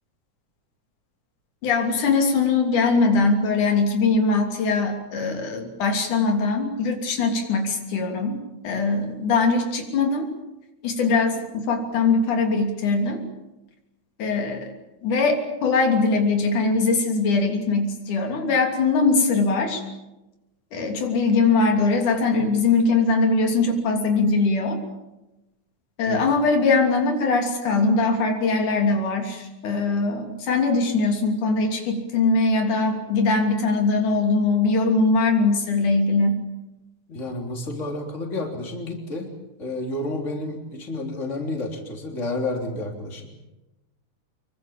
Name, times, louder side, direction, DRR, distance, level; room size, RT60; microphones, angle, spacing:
voice 1, 1.6-10.3 10.8-13.2 14.2-14.7 15.0-19.8 20.7-24.8 26.0-36.4, left 3 dB, 90° left, 3 dB, 4.6 m, -21 dB
voice 2, 37.1-39.3 39.6-43.3, left 2 dB, 25° left, 2 dB, 3.7 m, -30 dB
25.5 x 23.5 x 7.2 m, 0.99 s
omnidirectional pair, 3.4 m